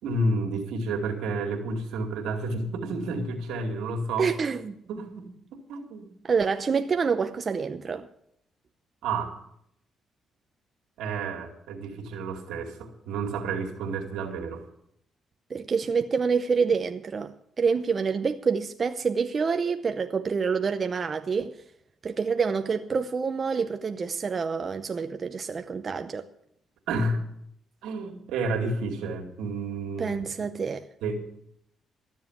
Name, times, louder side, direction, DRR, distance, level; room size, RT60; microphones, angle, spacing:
voice 1, 0.0-4.3 4.9-5.3 5.7-6.1 9.0-9.3 11.0-14.7 26.9-27.2 27.8-30.2 31.0-31.2, right 2 dB, 90° right, 2.4 m, -30 dB
voice 2, 4.2-4.8 6.2-8.1 15.5-21.6 22.0-26.3 30.0-30.9, right 5 dB, 40° right, 0.7 m, -27 dB
13.0 x 7.4 x 9.4 m
cardioid pair, 90°, 0 cm